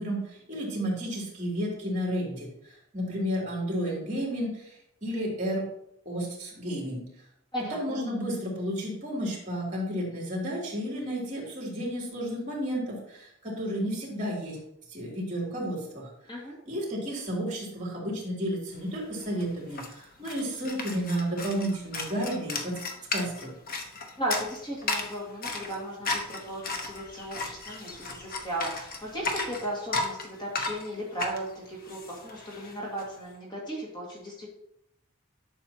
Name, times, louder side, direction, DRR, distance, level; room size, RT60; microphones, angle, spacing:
voice 1, 0.0-4.7 5.0-5.6 6.0-7.0 7.7-14.6 14.9-16.1 16.6-22.7 23.1-23.5, equal, 35° right, -3 dB, 3.2 m, -32 dB
voice 2, 7.5-8.0 16.3-16.6 24.2-34.5, right 1 dB, 20° left, -4 dB, 2.1 m, -36 dB
sound 1, 18.9-19.0 19.2-33.0, left 3 dB, 45° left, 1.1 m, -35 dB
11.5 x 6.9 x 2.9 m, 0.77 s
head